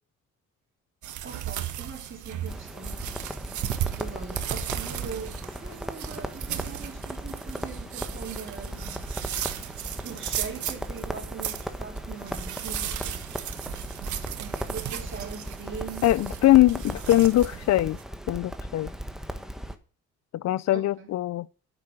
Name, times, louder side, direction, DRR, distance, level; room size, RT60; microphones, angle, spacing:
sound 1, 1.0-18.0, right 11 dB, 75° right, 1.3 m, -36 dB
voice 1, 1.2-3.1 4.0-9.3 10.0-13.2 14.4-16.1 20.7-21.1, right 5 dB, 40° right, 3.6 m, -41 dB
Crackle, 2.5-19.8, equal, ahead, 1.3 m, -37 dB
voice 2, 16.0-18.0 18.3-18.9 20.3-21.5, left 15 dB, 60° left, 0.5 m, -21 dB
9.7 x 8.7 x 6.3 m
cardioid pair, 90°, 30 cm